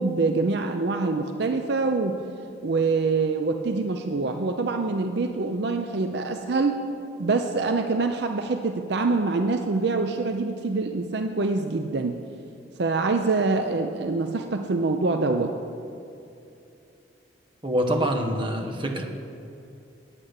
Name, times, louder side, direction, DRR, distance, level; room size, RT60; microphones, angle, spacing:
voice 1, 0.0-2.2 2.6-6.8 7.2-12.2 12.8-15.5, right 3 dB, 60° right, 5 dB, 0.5 m, -25 dB
voice 2, 17.6-19.0, equal, 25° right, 2 dB, 1.1 m, -25 dB
9.8 x 8.6 x 6.5 m, 2.7 s
head